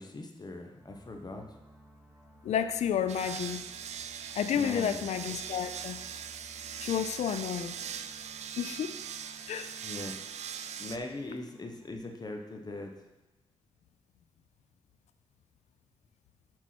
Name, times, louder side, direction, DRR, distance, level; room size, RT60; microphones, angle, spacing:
voice 1, 0.0-1.5 4.5-5.1 9.8-10.1 10.8-12.9, left 2 dB, 35° left, 3 dB, 0.9 m, -40 dB
sound 1, 0.8-11.9, right 2 dB, 20° right, 1.5 m, -56 dB
voice 2, 2.4-3.6 4.4-6.0 6.8-7.8 8.6-8.9 9.5-9.7, left 8 dB, 90° left, 11 dB, 0.4 m, -31 dB
sound 2, 3.1-11.0, right 8 dB, 80° right, 0.4 m, -41 dB
6.2 x 4.5 x 5.9 m, 1.0 s
cardioid pair, 75°, 11 cm